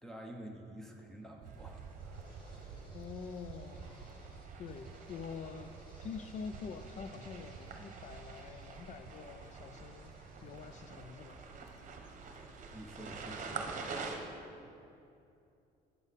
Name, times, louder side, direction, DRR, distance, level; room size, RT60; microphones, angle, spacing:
voice 1, 0.0-2.5 12.7-14.3, right 1 dB, 5° left, -1 dB, 0.8 m, -50 dB
sound 1, 1.2-10.9, equal, 30° left, 1.8 m, -63 dB
sound 2, 1.4-14.2, right 4 dB, 45° right, 1.0 m, -47 dB
sound 3, 1.4-13.4, right 7 dB, 65° right, 0.5 m, -54 dB
voice 2, 2.9-4.0 4.6-10.1 10.4-11.4, left 5 dB, 45° left, 9 dB, 0.4 m, -46 dB
8.2 x 7.0 x 4.1 m, 2.7 s
cardioid pair, 110°, 17 cm